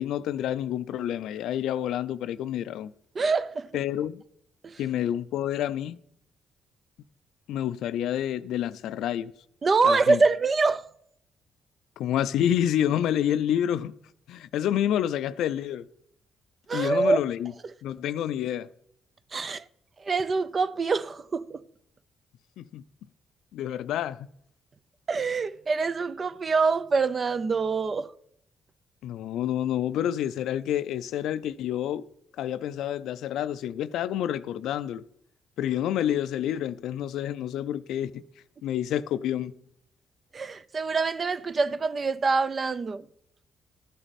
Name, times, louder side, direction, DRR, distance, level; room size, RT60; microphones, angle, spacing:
voice 1, 0.0-2.9 3.7-4.2 4.8-6.0 7.5-9.3 9.8-10.2 12.0-14.0 14.3-15.9 16.7-17.5 17.8-18.7 22.6-22.8 23.5-24.2 29.0-32.0 32.4-35.0 35.6-38.2 38.6-39.5, left 10 dB, 85° left, 0.4 m, -28 dB
voice 2, 3.1-3.7 4.6-4.8 9.6-10.8 16.7-17.2 19.3-19.6 20.0-21.6 25.1-28.1 40.3-43.0, right 4 dB, 35° right, 0.5 m, -25 dB
12.5 x 9.0 x 4.2 m
cardioid pair, 110°, 0 cm